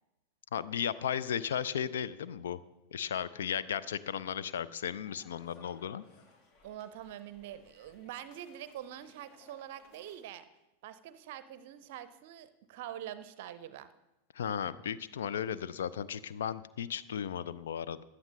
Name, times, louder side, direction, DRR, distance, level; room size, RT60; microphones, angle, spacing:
voice 1, 0.5-2.6 2.9-6.0 14.3-18.0, left 8 dB, 60° left, 15 dB, 0.5 m, -35 dB
sound 1, 5.1-10.2, left 3 dB, 40° left, 1.4 m, -62 dB
voice 2, 6.6-10.5 10.8-13.9, right 11 dB, 50° right, 14 dB, 0.6 m, -45 dB
16.0 x 11.0 x 3.2 m, 0.93 s
figure-of-eight pair, 90°, 0 cm